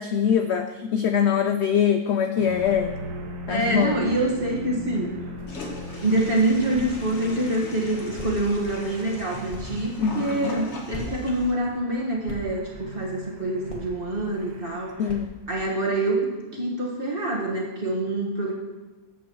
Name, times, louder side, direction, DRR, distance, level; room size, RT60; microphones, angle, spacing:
voice 1, 0.0-2.9 3.5-4.0 10.0-10.5 15.0-15.3, left 8 dB, 70° left, 7 dB, 0.6 m, -23 dB
sound 1, 2.4-15.2, equal, 80° right, 1.6 m, -39 dB
voice 2, 3.5-5.1 6.0-15.1 15.5-18.5, right 1 dB, 35° right, -3 dB, 1.9 m, -26 dB
sound 2, 4.9-15.7, equal, 20° left, 1.5 m, -44 dB
Toilet flush, 5.5-11.5, left 1 dB, 50° left, 1.6 m, -40 dB
13.5 x 8.1 x 3.1 m, 1.2 s
omnidirectional pair, 1.6 m